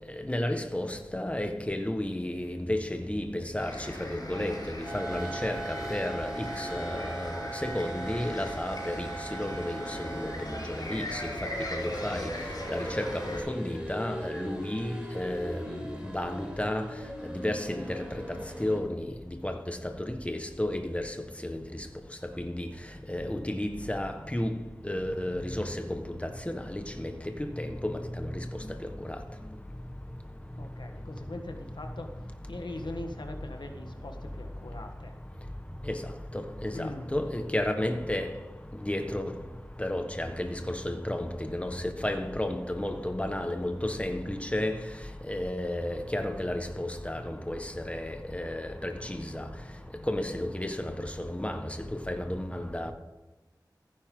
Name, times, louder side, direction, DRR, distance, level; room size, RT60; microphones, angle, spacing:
voice 1, 0.2-12.3 12.7-15.8 16.0-16.9 17.3-19.1 19.4-21.1 21.4-21.6 22.4-22.7 23.1-24.5 24.8-27.1 27.4-28.3 35.9-36.0 36.3-38.3 38.8-39.3 39.8-44.8 45.3-49.5 50.1-52.9, left 1 dB, 15° left, 1.4 m, -32 dB
sound 1, 3.6-13.4, left 1 dB, 60° left, 4.9 m, -39 dB
sound 2, 4.8-18.8, right 1 dB, 15° right, 4.9 m, -40 dB
voice 2, 30.6-32.1 32.5-35.1 36.7-37.1, left 2 dB, 85° left, 1.4 m, -41 dB
15.0 x 9.9 x 3.8 m
wide cardioid pair, 55°, 8 cm